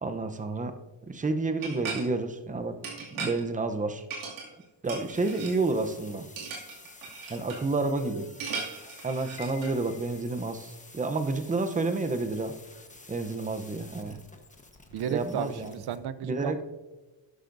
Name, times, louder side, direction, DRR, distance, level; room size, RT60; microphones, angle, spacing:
voice 1, 0.0-0.7 1.1-2.8 3.1-4.0 4.8-6.2 7.3-8.3 9.0-12.5 13.1-14.2 15.1-15.7 16.2-16.6, right 3 dB, 15° right, 8 dB, 0.7 m, -30 dB
sound 1, 1.6-2.1 2.8-3.4 4.1-4.6 4.9-5.5 6.4-7.6 8.4-9.7, right 4 dB, 75° right, 2.5 m, -37 dB
sound 2, 4.8-16.0, left 3 dB, 15° left, 1.2 m, -51 dB
Piano, 9.4-10.7, left 11 dB, 75° left, 0.9 m, -50 dB
voice 2, 14.9-16.6, right 9 dB, 55° right, 14 dB, 0.6 m, -33 dB
11.5 x 11.5 x 2.6 m, 1.2 s
cardioid pair, 110°, 48 cm